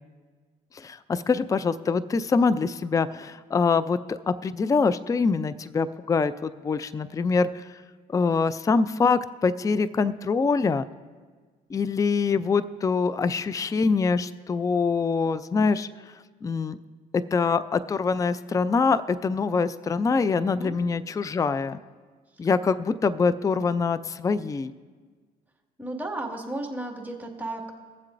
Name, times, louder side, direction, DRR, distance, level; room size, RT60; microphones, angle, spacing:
voice 1, 0.7-7.6 8.1-10.9 11.7-15.9 16.4-16.8 17.1-21.8 22.4-24.7, left 4 dB, 20° left, 15 dB, 0.4 m, -24 dB
voice 2, 25.8-27.7, right 2 dB, 10° right, 0 dB, 1.9 m, -34 dB
22.0 x 7.4 x 2.6 m, 1.5 s
supercardioid pair, 85°, 17 cm